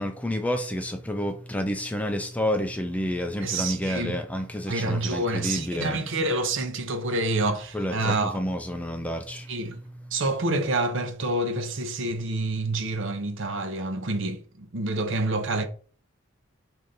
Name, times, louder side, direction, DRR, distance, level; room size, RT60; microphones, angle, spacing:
voice 1, 0.0-6.0 7.7-9.6, equal, 5° left, 0.4 m, -29 dB
voice 2, 3.4-4.2 4.7-8.4 9.5-9.8 10.1-15.7, right 2 dB, 60° right, 0.7 m, -27 dB
5.0 x 2.7 x 3.9 m
head